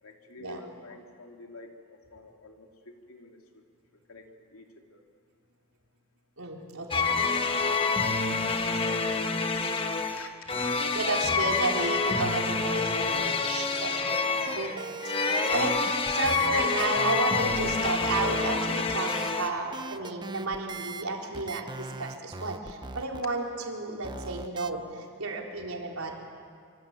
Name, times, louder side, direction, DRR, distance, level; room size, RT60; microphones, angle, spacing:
voice 1, 0.0-3.6 4.1-4.7 4.9-5.0 7.0-10.6 25.9-26.1, left 3 dB, 80° left, 3 dB, 2.9 m, -49 dB
voice 2, 6.4-7.1 10.9-26.1, right 3 dB, 80° right, 0 dB, 4.1 m, -32 dB
sound 1, 6.9-19.5, left 4 dB, 25° left, 1.4 m, -27 dB
sound 2, 14.1-18.6 18.9-19.3 19.7-21.1 21.3-23.2 24.0-24.7, right 3 dB, 20° right, 0.6 m, -40 dB
25.0 x 24.5 x 9.0 m, 2.2 s
head